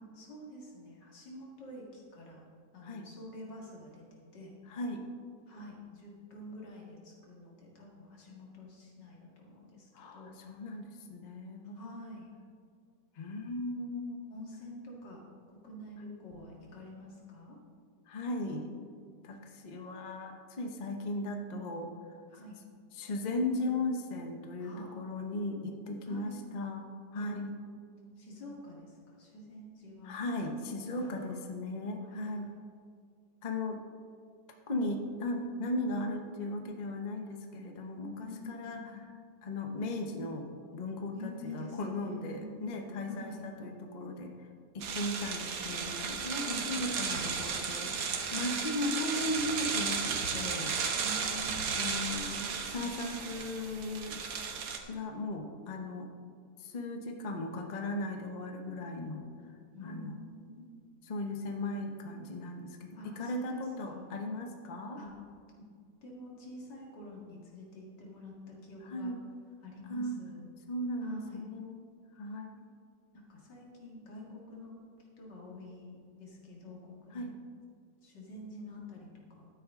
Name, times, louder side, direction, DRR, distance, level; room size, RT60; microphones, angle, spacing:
voice 1, 0.1-2.5 2.7-4.5 5.5-10.3 11.7-12.3 14.3-15.2 15.5-17.6 22.3-22.6 24.6-24.9 26.1-26.4 27.2-27.3 28.2-30.2 30.9-31.3 32.0-32.5 38.3-38.9 41.1-42.5 43.0-43.4 46.2-46.7 48.2-48.8 51.0-51.9 59.7-60.8 62.9-64.1 64.9-65.1 66.0-69.1 69.6-70.5 71.0-71.4 73.1-74.7 75.2-77.3 78.0-79.5, left 1 dB, 85° left, -2 dB, 2.6 m, -47 dB
voice 2, 4.7-5.0 9.9-11.9 13.2-14.2 18.1-18.7 19.2-21.9 22.9-27.5 30.0-32.5 33.4-33.8 34.7-38.8 39.4-40.5 40.7-44.5 44.7-50.7 51.7-54.4 54.9-56.1 56.6-59.2 59.8-60.1 61.1-65.0 68.9-69.2 69.9-70.2 70.7-72.6 77.1-77.4, left 2 dB, 35° left, 3 dB, 0.8 m, -37 dB
sound 1, 44.8-54.8, right 6 dB, 60° right, 1.3 m, -34 dB
12.5 x 9.4 x 3.7 m, 2.1 s
omnidirectional pair, 1.8 m